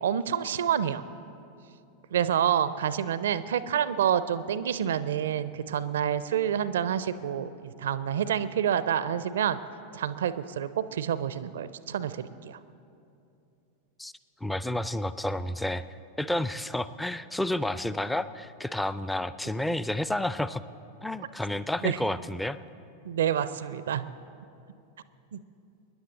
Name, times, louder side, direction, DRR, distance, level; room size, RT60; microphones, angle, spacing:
voice 1, 0.0-1.0 2.1-9.6 9.9-12.6 21.8-22.0 23.0-24.0 25.3-25.4, right 9 dB, 60° right, 15 dB, 0.4 m, -28 dB
voice 2, 14.4-15.8 16.2-20.6 21.0-22.6, left 1 dB, 5° left, 14 dB, 0.4 m, -30 dB
25.5 x 10.5 x 3.9 m, 2.6 s
figure-of-eight pair, 90°, 0 cm